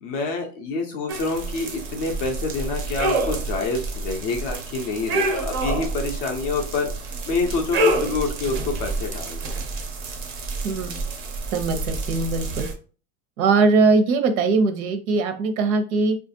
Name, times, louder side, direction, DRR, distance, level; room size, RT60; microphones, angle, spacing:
voice 1, 0.0-6.9 7.3-9.4, left 3 dB, 30° left, 3 dB, 0.4 m, -27 dB
sound 1, 1.1-12.7, right 2 dB, 35° right, 0.5 m, -28 dB
voice 2, 10.6-11.0 11.5-12.7 13.4-16.2, right 4 dB, 85° right, 7 dB, 0.9 m, -21 dB
4.5 x 2.4 x 2.6 m, 0.38 s
supercardioid pair, 170°, 41 cm